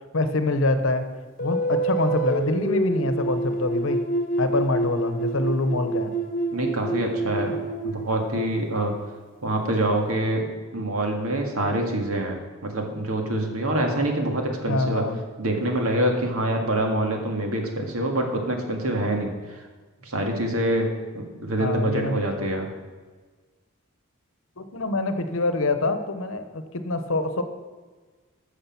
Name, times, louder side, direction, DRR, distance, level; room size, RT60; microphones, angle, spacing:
voice 1, 0.1-1.1 1.4-4.0 4.4-6.1 14.7-15.2 21.6-22.2 24.6-27.4, left 2 dB, 70° left, 9 dB, 1.0 m, -25 dB
sound 1, 1.4-8.7, right 2 dB, 40° left, 1.5 m, -27 dB
voice 2, 6.5-7.6 7.8-8.9 9.4-10.5 10.7-15.0 15.4-19.6 20.0-20.9 21.1-22.7, right 1 dB, 90° right, 2 dB, 2.0 m, -25 dB
14.0 x 6.5 x 5.9 m, 1.4 s
head